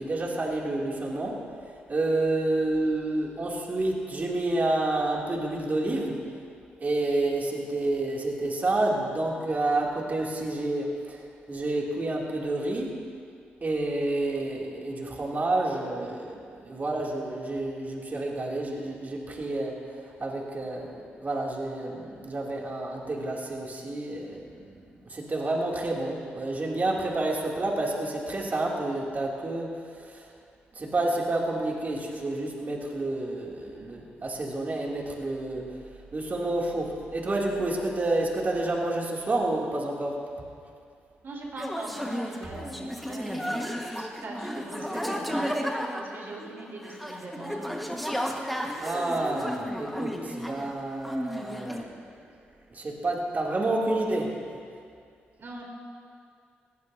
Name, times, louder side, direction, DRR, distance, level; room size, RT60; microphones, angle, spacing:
voice 1, 0.0-1.4 1.9-6.2 6.8-12.9 13.6-30.3 30.7-35.6 36.1-40.2 48.8-52.3 52.7-54.3, right 2 dB, 40° right, -2 dB, 2.9 m, -29 dB
voice 2, 41.2-43.6 43.9-47.9 55.4-55.6, right 2 dB, 55° right, -2 dB, 3.9 m, -41 dB
sound 1, 41.6-50.8 51.0-51.8, equal, ahead, 1.6 m, -33 dB
20.0 x 15.5 x 2.8 m, 2.3 s
supercardioid pair, 55°, 4 cm